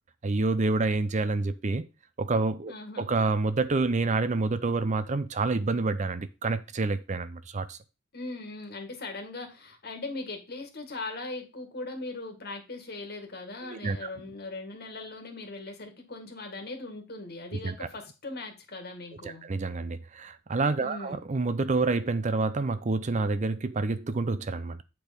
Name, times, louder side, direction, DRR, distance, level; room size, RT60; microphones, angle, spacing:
voice 1, 0.2-1.9 2.2-7.8 13.6-14.1 17.5-17.9 19.2-24.8, right 3 dB, 35° right, 0.5 m, -28 dB
voice 2, 2.7-3.1 8.1-19.4 20.8-21.2, left 2 dB, 50° left, 1.8 m, -39 dB
8.2 x 4.6 x 5.1 m
head